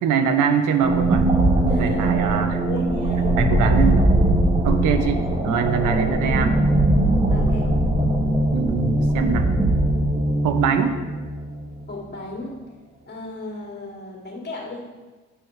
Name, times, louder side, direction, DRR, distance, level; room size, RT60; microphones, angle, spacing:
voice 1, 0.0-1.3 1.6-2.6 3.4-4.1 4.6-6.6 8.5-9.5 10.4-11.0, right 6 dB, 85° right, 8 dB, 0.7 m, -23 dB
sound 1, 0.8-11.8, right 1 dB, 20° right, 1.1 m, -20 dB
voice 2, 1.7-2.1 2.6-3.4 5.9-6.0 7.3-7.7 11.9-12.5 13.1-14.8, left 2 dB, 35° left, -2 dB, 2.1 m, -35 dB
10.5 x 4.7 x 3.2 m, 1.3 s
cardioid pair, 90°, 30 cm